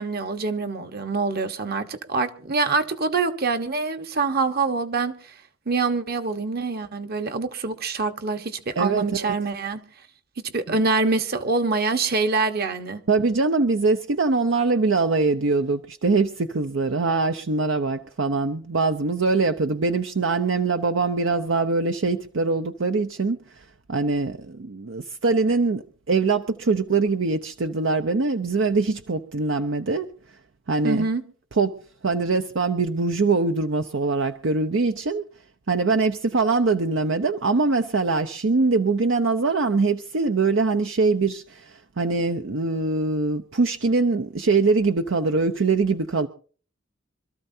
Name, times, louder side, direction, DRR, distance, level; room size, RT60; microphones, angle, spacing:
voice 1, 0.0-5.1 5.7-9.8 10.5-13.0 30.8-31.2, right 4 dB, 50° right, 1.2 m, -25 dB
voice 2, 8.8-9.3 10.7-10.8 13.1-23.4 23.9-30.1 30.7-31.1 31.5-35.2 35.7-46.3, right 3 dB, 70° right, 0.7 m, -23 dB
26.0 x 13.5 x 2.8 m
head